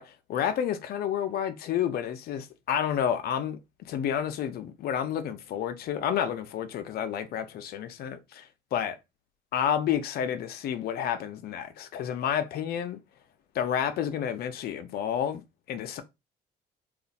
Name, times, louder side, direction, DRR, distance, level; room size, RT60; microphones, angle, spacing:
voice 1, 0.0-3.6 3.9-9.0 9.5-13.0 13.5-15.4 15.7-16.0, left 9 dB, 65° left, 0.6 m, -30 dB
2.5 x 2.4 x 4.0 m
cardioid pair, 110°, 17 cm